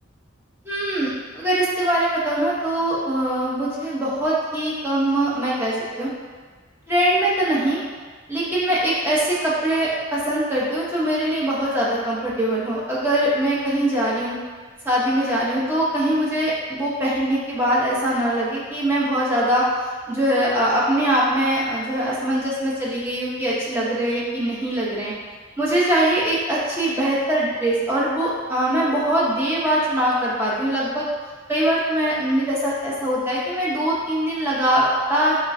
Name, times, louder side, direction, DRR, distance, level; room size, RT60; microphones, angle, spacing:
voice 1, 0.6-1.1 1.3-6.1 6.9-7.8 8.3-14.4 14.8-19.6 20.1-25.1 25.6-31.1 31.5-35.4, right 1 dB, 10° right, -7 dB, 0.6 m, -22 dB
3.7 x 3.0 x 2.6 m, 1.5 s
head